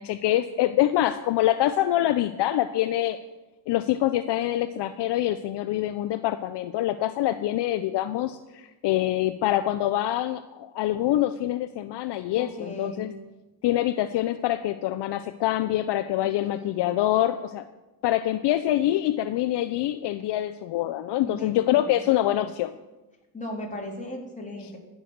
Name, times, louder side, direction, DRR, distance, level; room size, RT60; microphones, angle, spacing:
voice 1, 0.0-3.2 3.7-13.1 13.6-17.7 18.0-22.7, left 13 dB, 60° left, 12 dB, 0.6 m, -25 dB
voice 2, 12.4-13.1 16.5-16.8 21.2-22.0 23.3-24.8, left 1 dB, 15° left, -2 dB, 3.9 m, -37 dB
16.0 x 6.3 x 6.4 m, 1.1 s
supercardioid pair, 85°, 47 cm